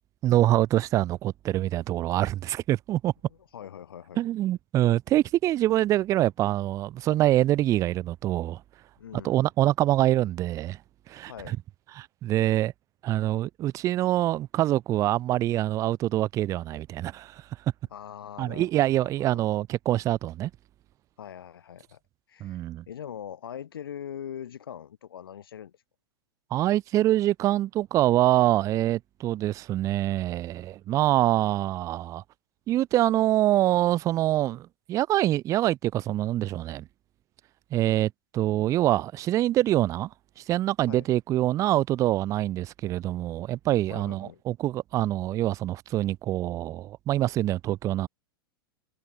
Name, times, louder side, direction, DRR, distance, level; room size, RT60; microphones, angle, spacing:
voice 1, 0.2-3.1 4.2-8.6 9.2-10.8 11.1-11.3 12.0-12.7 13.0-17.4 18.4-20.5 22.4-22.8 26.5-32.2 32.7-36.9 37.7-40.1 40.5-48.1, right 14 dB, 25° right, 0.4 m, -25 dB
voice 2, 3.3-4.2 9.0-9.5 11.3-11.6 17.9-19.4 21.2-22.0 22.3-25.8 40.9-41.1 43.9-44.4, left 9 dB, 65° left, 2.8 m, -42 dB
figure-of-eight pair, 95°, 13 cm